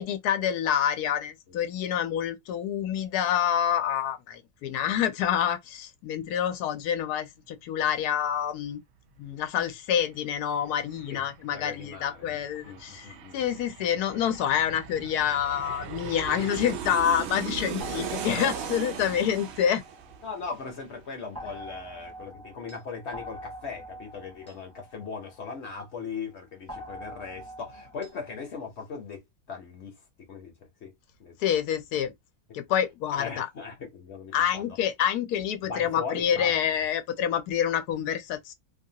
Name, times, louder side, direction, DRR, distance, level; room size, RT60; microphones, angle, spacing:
voice 1, 0.0-8.8 9.2-19.8 31.4-32.1 32.5-33.5 34.3-38.5, left 9 dB, 85° left, 1.1 m, -27 dB
Aircraft, 9.7-9.8 10.1-21.4 21.7-21.8, right 8 dB, 70° right, 0.6 m, -38 dB
voice 2, 11.1-13.6 20.2-30.5 30.8-30.9 31.2-31.4 32.5-32.6 33.1-34.8 35.6-36.7, left 5 dB, 55° left, 0.9 m, -39 dB
sound 1, 17.8-20.6 21.3-25.9 26.7-28.5, equal, 5° left, 0.6 m, -44 dB
2.7 x 2.3 x 2.7 m
omnidirectional pair, 1.6 m